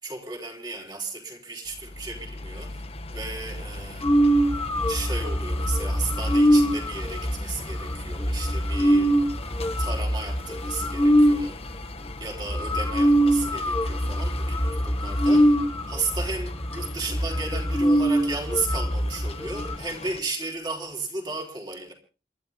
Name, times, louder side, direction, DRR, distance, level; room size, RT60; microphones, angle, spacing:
voice 1, 0.0-2.9 3.1-4.1 4.9-9.1 9.8-11.6 12.0-15.6 15.9-21.9, right 3 dB, 25° right, 3.8 m, -34 dB
sound 1, 1.7-20.2, left 2 dB, 35° left, 1.2 m, -39 dB
sound 2, 4.0-11.4 12.1-12.2 12.4-19.8, equal, 15° left, 1.3 m, -23 dB
28.5 x 12.0 x 3.6 m
head